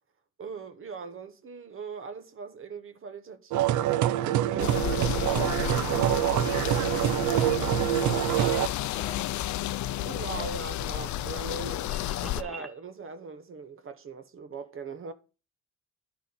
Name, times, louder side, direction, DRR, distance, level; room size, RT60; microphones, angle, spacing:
voice 1, 0.4-4.8 10.0-15.1, right 5 dB, 45° right, 0.8 m, -40 dB
sound 1, 3.5-8.7, right 12 dB, 75° right, 0.5 m, -25 dB
sound 2, 4.6-12.4, left 14 dB, 70° left, 0.5 m, -32 dB
voice 2, 5.2-9.3 10.2-10.7, left 3 dB, 20° left, 1.1 m, -46 dB
sound 3, 9.9-12.8, right 1 dB, ahead, 0.8 m, -48 dB
10.5 x 4.0 x 5.5 m
cardioid pair, 90°, 30 cm